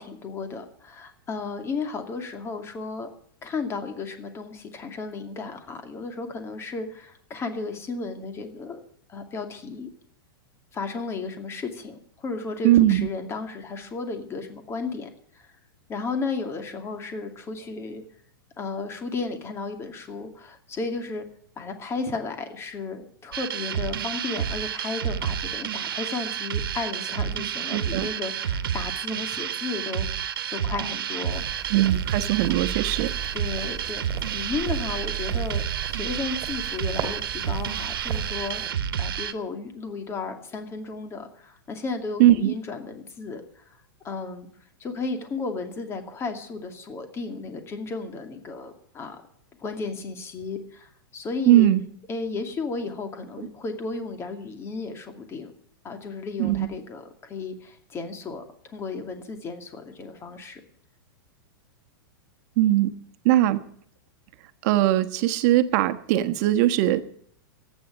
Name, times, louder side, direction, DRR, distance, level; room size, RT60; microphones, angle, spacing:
voice 1, 0.0-3.1 3.4-8.8 9.1-9.9 10.7-15.1 15.3-15.5 15.9-18.0 18.6-21.3 21.6-31.7 33.3-38.7 39.0-43.8 44.0-44.5 44.8-49.2 49.6-51.7 52.1-55.5 55.8-60.6, left 4 dB, 20° left, 6 dB, 2.4 m, -34 dB
voice 2, 12.6-13.1 27.7-28.1 31.7-33.1 42.2-42.5 51.5-51.8 56.4-56.7 62.6-62.9 63.2-63.6 64.6-67.0, right 14 dB, 50° right, 11 dB, 1.3 m, -20 dB
sound 1, 23.3-39.3, right 9 dB, 80° right, 1.3 m, -30 dB
sound 2, 31.3-38.7, right 8 dB, 30° right, 2.6 m, -36 dB
14.0 x 9.4 x 9.0 m, 0.62 s
hypercardioid pair, 135°, 12 cm